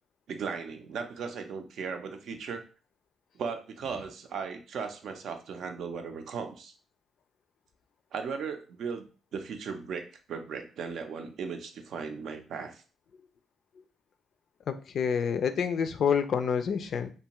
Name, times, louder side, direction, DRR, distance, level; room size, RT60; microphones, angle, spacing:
voice 1, 0.3-2.6 3.3-6.7 8.1-12.8, right 5 dB, 70° right, 6 dB, 0.5 m, -37 dB
voice 2, 14.7-17.1, left 7 dB, 60° left, 10 dB, 0.3 m, -28 dB
2.6 x 2.3 x 2.9 m, 0.36 s
cardioid pair, 90°, 0 cm